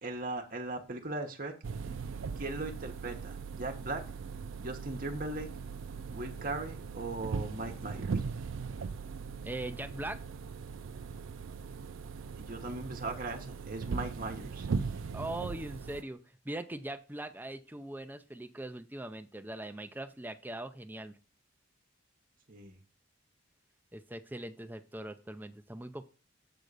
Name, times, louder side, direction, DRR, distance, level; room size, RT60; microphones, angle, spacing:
voice 1, 0.0-1.5 2.4-4.0 4.6-5.5 6.1-8.2 12.4-14.9 22.5-22.8, right 2 dB, 45° right, 4 dB, 1.2 m, -38 dB
sound 1, 1.6-16.0, right 5 dB, 75° right, 0.4 m, -39 dB
voice 2, 9.4-10.2 15.1-21.2 23.9-26.0, right 1 dB, 10° right, 7 dB, 0.5 m, -41 dB
7.9 x 3.7 x 6.7 m, 0.36 s
head